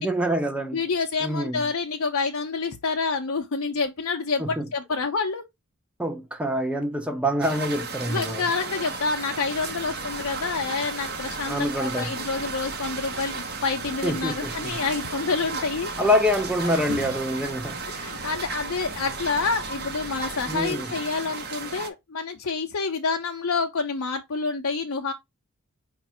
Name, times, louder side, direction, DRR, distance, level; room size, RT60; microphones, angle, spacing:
voice 1, 0.0-0.8 1.2-1.7 4.4-4.7 6.0-8.4 11.5-12.1 14.0-14.8 16.0-17.8 20.5-20.9, equal, 5° right, 0.6 m, -26 dB
voice 2, 0.7-5.4 8.1-15.9 16.6-17.1 17.9-25.1, left 4 dB, 70° left, 0.6 m, -28 dB
sound 1, 7.4-21.9, right 4 dB, 45° right, 0.8 m, -35 dB
sound 2, 9.5-20.7, right 3 dB, 80° right, 0.8 m, -43 dB
5.1 x 2.5 x 4.3 m
head